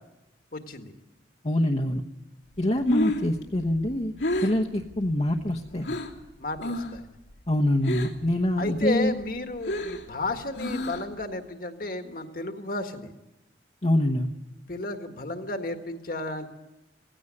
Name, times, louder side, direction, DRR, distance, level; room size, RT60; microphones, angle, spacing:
voice 1, 0.5-0.9 6.4-7.0 8.6-13.1 14.7-16.5, left 2 dB, 55° left, 6 dB, 1.7 m, -32 dB
voice 2, 1.4-2.0 2.6-6.0 7.5-9.1 13.8-14.3, left 1 dB, 35° left, 1 dB, 1.0 m, -25 dB
Breathing, 2.6-6.2 6.6-7.0 7.3-8.3 8.7-11.2, left 1 dB, 90° left, 2.8 m, -31 dB
17.5 x 16.5 x 9.8 m, 0.97 s
head